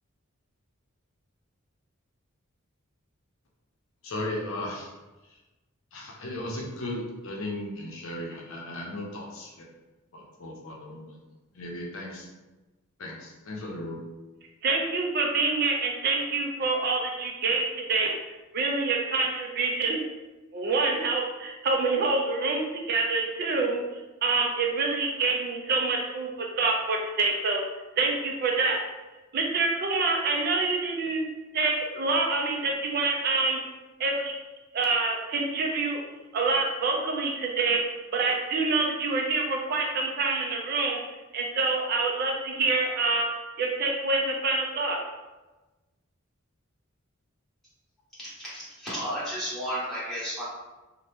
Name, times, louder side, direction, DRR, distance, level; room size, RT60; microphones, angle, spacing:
voice 1, 4.0-4.9 5.9-9.7 10.1-11.2 11.5-12.3 13.0-14.0, left 1 dB, 70° left, -1 dB, 0.6 m, -36 dB
voice 2, 14.6-18.1 18.5-20.0 20.5-23.8 24.2-27.6 28.0-28.8 29.3-31.2 31.5-33.6 34.0-34.3 34.7-36.0 36.3-37.8 38.1-41.0 41.3-43.3 43.6-45.0, right 3 dB, 50° right, 1 dB, 0.4 m, -26 dB
voice 3, 48.2-50.4, equal, ahead, -11 dB, 1.3 m, -33 dB
2.7 x 2.1 x 3.3 m, 1.1 s
head